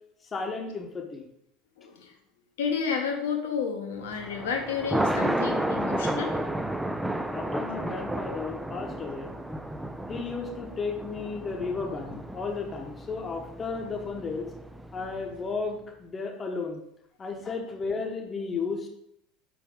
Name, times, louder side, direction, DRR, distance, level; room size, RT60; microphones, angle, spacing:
voice 1, 0.3-1.3 7.3-9.4 10.1-14.5 14.9-16.8 17.2-18.9, left 4 dB, 25° left, 3 dB, 1.0 m, -33 dB
voice 2, 1.8-2.1 2.6-6.3, left 6 dB, 65° left, 3 dB, 0.9 m, -31 dB
Thunder, 4.1-15.4, right 1 dB, 5° right, 0.4 m, -32 dB
7.0 x 5.2 x 3.7 m, 0.77 s
figure-of-eight pair, 70°, 0 cm